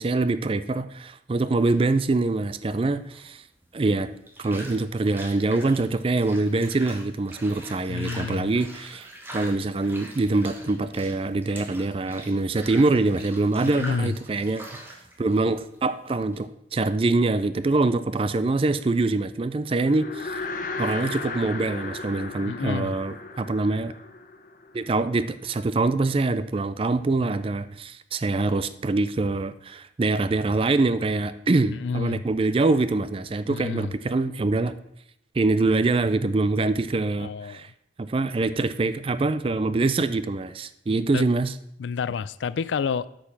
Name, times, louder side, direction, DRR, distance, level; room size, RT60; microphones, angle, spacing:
voice 1, 0.0-3.4 3.7-4.1 4.4-14.6 15.2-20.4 20.8-23.9 24.7-34.7 35.3-37.7 38.0-41.5, right 3 dB, 30° right, 0.4 m, -24 dB
sound 1, 1.6-16.4, right 1 dB, 10° right, 1.3 m, -44 dB
voice 2, 7.9-8.6 13.6-14.1 22.4-22.9 31.7-32.3 33.5-33.9 37.2-37.7 41.1-41.2 41.8-43.1, left 6 dB, 85° left, 0.4 m, -29 dB
sound 2, 19.7-25.2, left 3 dB, 45° left, 0.8 m, -35 dB
8.4 x 5.3 x 6.0 m
head